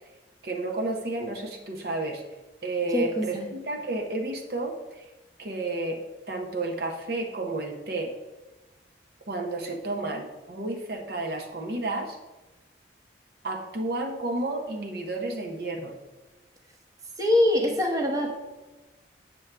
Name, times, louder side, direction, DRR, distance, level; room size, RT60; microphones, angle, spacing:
voice 1, 0.4-2.2 2.6-5.1 5.4-6.0 6.3-8.1 9.3-12.2 13.4-15.9, right 2 dB, 55° right, 2 dB, 0.7 m, -31 dB
voice 2, 2.9-3.5 17.2-18.4, left 1 dB, 20° right, 1 dB, 0.9 m, -24 dB
7.9 x 6.1 x 3.3 m, 1.1 s
head